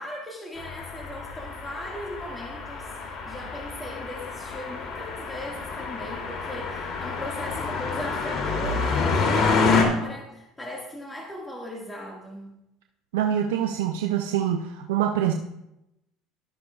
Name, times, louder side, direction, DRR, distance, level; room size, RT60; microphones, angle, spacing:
voice 1, 0.0-12.5, left 1 dB, 15° left, -2 dB, 1.9 m, -38 dB
sound 1, 0.6-9.8, left 4 dB, 50° left, 2.8 m, -28 dB
voice 2, 13.1-15.3, right 10 dB, 85° right, 4 dB, 0.6 m, -25 dB
12.5 x 12.0 x 2.4 m, 0.88 s
supercardioid pair, 85°, 0 cm